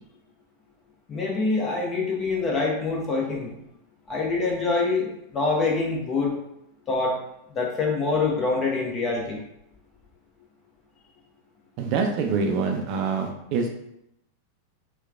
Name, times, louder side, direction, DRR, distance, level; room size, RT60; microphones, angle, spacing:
voice 1, 1.1-3.6 4.1-6.4 6.9-7.2 7.5-9.4, left 3 dB, 25° left, -1 dB, 0.9 m, -25 dB
voice 2, 11.8-13.7, right 5 dB, 40° right, 3 dB, 0.4 m, -25 dB
4.4 x 2.2 x 2.4 m, 0.80 s
figure-of-eight pair, 90°, 0 cm